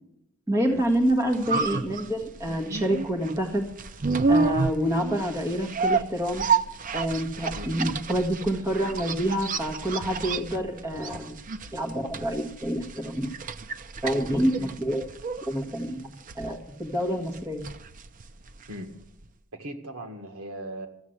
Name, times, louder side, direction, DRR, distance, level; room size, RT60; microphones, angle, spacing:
voice 1, 0.5-3.7 4.3-6.5 6.9-11.4 11.7-13.3 14.0-15.0 15.5-17.7, equal, 15° right, 3 dB, 1.6 m, -27 dB
sound 1, 0.9-18.9 19.2-19.3, right 4 dB, 35° right, 0.5 m, -30 dB
voice 2, 19.5-20.9, equal, 75° right, 4 dB, 1.8 m, -38 dB
14.0 x 7.3 x 8.0 m, 0.83 s
head